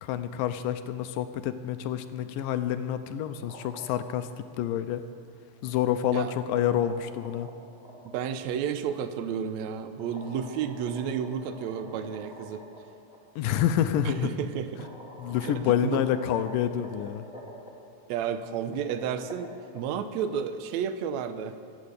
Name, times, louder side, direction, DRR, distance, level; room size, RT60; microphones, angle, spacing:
voice 1, 0.0-5.0 5.6-7.5 13.4-14.3 15.2-17.2, left 10 dB, 80° left, 10 dB, 2.2 m, -28 dB
sound 1, 3.3-4.4 5.5-8.4 10.0-12.8 13.1-13.2 14.3-14.4 14.8-17.7 18.5-20.2, equal, ahead, 2.0 m, -46 dB
voice 2, 8.0-12.6 14.0-14.9 15.4-16.0 18.1-21.5, right 8 dB, 80° right, 10 dB, 1.6 m, -32 dB
23.0 x 9.3 x 6.7 m, 2.2 s
omnidirectional pair, 4.1 m